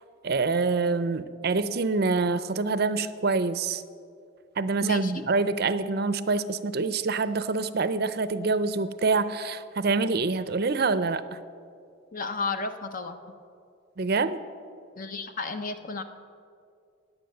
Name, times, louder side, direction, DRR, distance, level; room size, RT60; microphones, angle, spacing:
voice 1, 0.2-3.8 4.6-11.2 14.0-14.4, right 3 dB, 50° right, 13 dB, 0.6 m, -26 dB
voice 2, 4.8-5.1 12.1-13.2 15.0-16.0, left 4 dB, 40° left, 8 dB, 0.9 m, -32 dB
17.0 x 9.4 x 6.7 m, 2.4 s
head